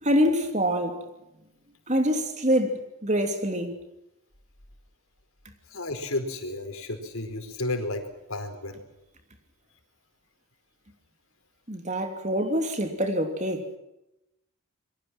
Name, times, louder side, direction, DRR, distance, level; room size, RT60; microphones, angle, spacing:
voice 1, 0.0-1.0 1.9-3.8 11.7-13.7, equal, 30° right, 3.0 m, -25 dB
voice 2, 5.7-8.8, left 2 dB, 70° left, 4.6 m, -32 dB
27.5 x 23.0 x 6.1 m
head